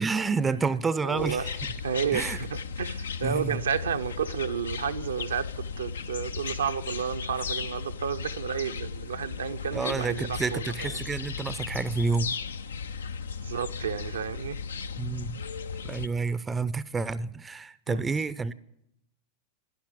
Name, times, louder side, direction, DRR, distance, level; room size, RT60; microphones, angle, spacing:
voice 1, 0.0-1.6 2.1-2.4 3.2-3.6 9.7-12.3 15.0-15.4 15.8-18.5, right 4 dB, 15° right, 0.5 m, -29 dB
voice 2, 1.0-1.5 1.8-11.0 13.4-14.6 17.9-18.1, right 7 dB, 70° right, 0.6 m, -31 dB
sound 1, 1.2-16.1, left 5 dB, 70° left, 0.5 m, -36 dB
12.0 x 10.5 x 10.0 m
figure-of-eight pair, 90°, 0 cm